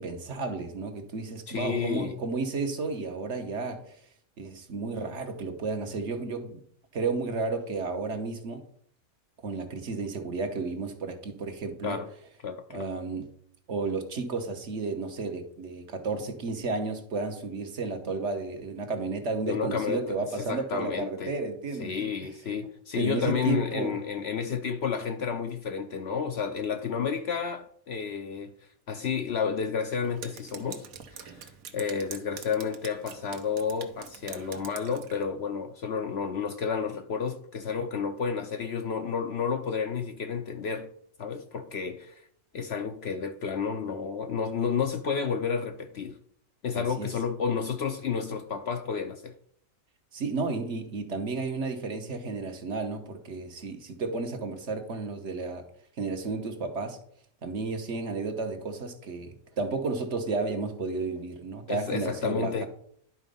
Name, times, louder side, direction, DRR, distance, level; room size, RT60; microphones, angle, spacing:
voice 1, 0.0-4.0 4.4-6.6 6.9-8.6 9.4-12.0 12.7-13.3 13.7-22.1 22.5-22.7 23.0-23.9 46.7-47.1 50.1-55.6 56.0-57.0 57.4-62.7, right 3 dB, 55° right, 1.3 m, -32 dB
voice 2, 1.5-2.2 11.8-12.1 12.4-12.9 19.5-21.3 21.8-28.5 28.9-40.9 41.2-42.3 42.5-46.2 46.6-49.3 61.7-62.7, left 6 dB, 60° left, 0.8 m, -31 dB
Drip, 30.0-35.2, right 7 dB, 75° right, 1.3 m, -45 dB
11.0 x 3.9 x 5.3 m
omnidirectional pair, 1.5 m